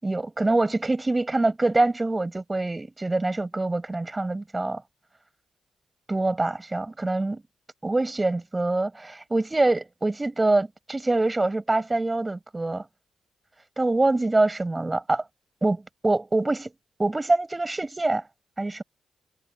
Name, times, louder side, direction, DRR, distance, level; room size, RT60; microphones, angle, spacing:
voice 1, 0.0-4.8 6.1-7.4 7.8-12.8 13.8-15.2 15.6-16.7 17.0-18.2 18.6-18.8, right 2 dB, 20° right, 6.9 m, -25 dB
cardioid pair, 70°, 0 cm